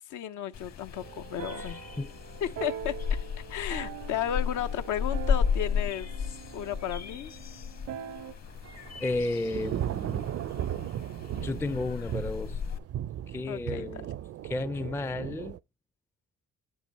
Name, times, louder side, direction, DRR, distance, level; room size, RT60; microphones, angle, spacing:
voice 1, 0.1-1.8 2.4-3.0 3.5-6.1 6.5-7.3 13.5-13.9, left 10 dB, 80° left, 0.8 m, -33 dB
sound 1, 0.5-12.8, left 6 dB, 60° left, 1.4 m, -34 dB
sound 2, 0.9-8.3, right 9 dB, 85° right, 1.0 m, -43 dB
Thunder / Rain, 8.2-15.6, right 11 dB, 55° right, 0.5 m, -36 dB
voice 2, 9.0-10.3 11.4-12.6 13.3-14.1 14.4-15.6, left 2 dB, 10° left, 0.4 m, -33 dB
8.5 x 7.9 x 3.0 m
cardioid pair, 90°, 30 cm